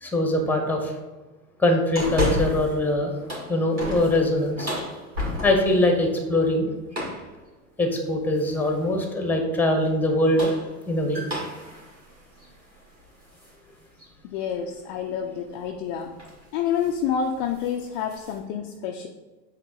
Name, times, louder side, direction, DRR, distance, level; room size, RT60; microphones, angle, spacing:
voice 1, 0.0-0.9 1.6-3.1 3.5-4.7 5.4-6.7 7.8-10.6 10.9-11.2, left 1 dB, 5° left, 3 dB, 1.0 m, -22 dB
sound 1, 1.9-2.8 3.1-5.8 6.9-7.3 8.4-8.8 10.1-13.5 14.0-14.1 15.6-15.8 16.2-16.4 16.7-17.0 17.3-18.4, left 1 dB, 90° right, 2.2 m, -32 dB
voice 2, 14.2-16.1 16.5-19.1, left 7 dB, 35° left, 3 dB, 0.5 m, -28 dB
7.8 x 3.3 x 4.7 m, 1.2 s
figure-of-eight pair, 85°, 50 cm